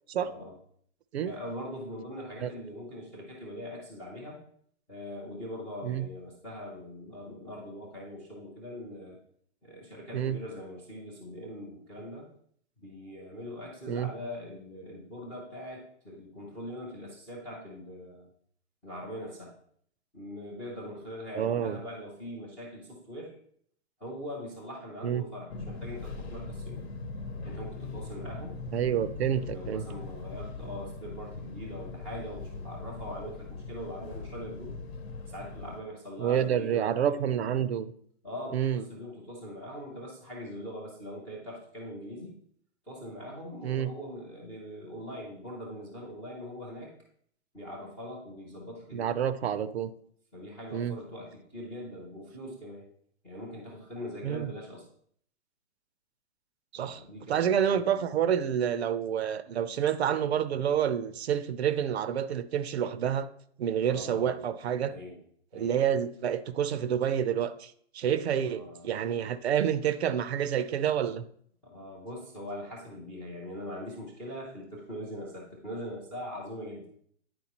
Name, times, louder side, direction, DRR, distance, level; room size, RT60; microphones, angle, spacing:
voice 1, 0.2-0.6 1.2-4.4 4.9-9.2 9.6-12.3 12.8-18.3 18.8-19.5 20.1-23.3 24.0-26.8 27.4-28.6 29.2-34.7 35.3-37.6 38.2-42.4 42.9-46.9 47.5-49.2 50.3-52.8 53.2-54.9 56.8-58.0 63.9-64.4 64.9-65.2 65.5-65.8 68.4-68.9 71.6-76.9, equal, 5° left, -7 dB, 0.4 m, -42 dB
voice 2, 21.4-21.8 25.0-25.2 28.7-29.8 36.2-37.9 38.5-38.8 43.6-43.9 48.9-49.9 50.7-51.0 54.2-54.5 56.7-57.0 57.3-63.3 63.6-64.9 65.5-71.2, right 9 dB, 70° right, 14 dB, 0.6 m, -28 dB
Fixed-wing aircraft airplane, 25.5-35.8, left 3 dB, 65° left, 1.0 m, -40 dB
9.5 x 4.5 x 2.9 m, 0.63 s
hypercardioid pair, 160°, 34 cm